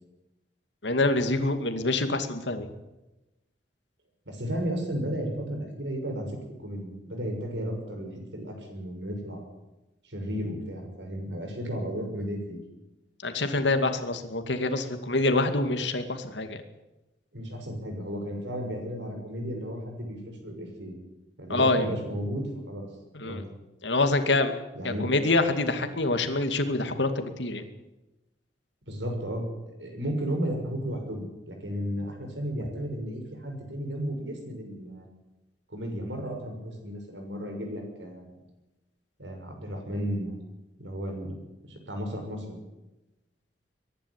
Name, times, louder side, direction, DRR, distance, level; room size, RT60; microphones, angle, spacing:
voice 1, 0.8-2.7 13.2-16.6 21.5-22.0 23.1-23.4 23.8-24.5 24.8-27.6, left 2 dB, 80° left, 8 dB, 2.4 m, -26 dB
voice 2, 4.3-6.4 6.6-9.5 10.0-12.6 17.3-20.9 21.4-22.9 23.2-23.4 24.7-25.1 28.9-35.1 35.7-38.4 39.2-40.3 40.8-41.3 41.7-42.6, equal, 85° right, 3 dB, 6.5 m, -34 dB
23.0 x 11.5 x 9.9 m, 1.0 s
head